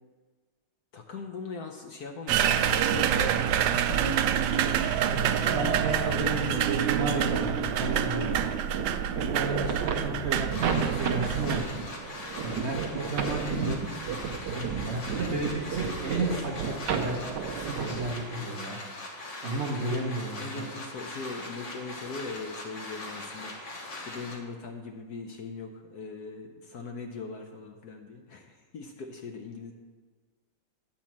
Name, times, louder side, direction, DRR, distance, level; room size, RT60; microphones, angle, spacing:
voice 1, 0.9-4.2 4.6-6.7 7.1-7.5 8.1-8.6 14.7-14.9 19.8-20.1 20.4-23.5 24.0-29.7, left 4 dB, 65° left, 3 dB, 0.9 m, -40 dB
sound 1, 2.3-11.6, right 10 dB, 85° right, 1.5 m, -28 dB
sound 2, 2.8-18.1, right 7 dB, 65° right, 1.2 m, -33 dB
voice 2, 5.5-8.4 9.1-11.8 12.4-13.9 14.5-17.2 17.5-18.8 19.4-20.7, right 2 dB, 45° right, -2 dB, 0.9 m, -32 dB
sound 3, 10.5-24.4, left 2 dB, 40° left, 1.3 m, -41 dB
10.5 x 4.5 x 7.3 m, 1.5 s
omnidirectional pair, 2.4 m